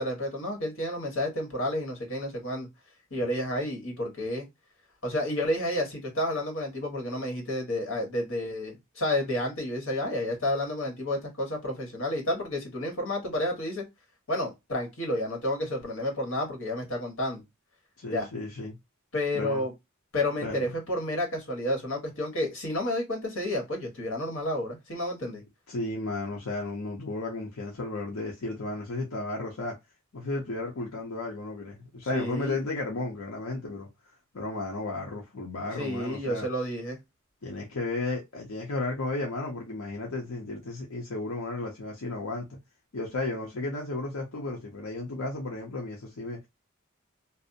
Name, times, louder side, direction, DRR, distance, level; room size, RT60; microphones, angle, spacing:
voice 1, 0.0-2.7 3.1-4.5 5.0-13.8 14.3-17.4 18.1-18.3 19.1-19.7 20.1-25.4 32.1-32.6 35.7-37.0, left 1 dB, 65° left, 1.3 m, -30 dB
voice 2, 18.0-18.8 19.3-19.6 20.4-20.6 25.7-29.8 30.1-36.5 37.4-42.6 42.9-46.5, left 2 dB, 85° left, 0.7 m, -34 dB
2.6 x 2.0 x 2.5 m
head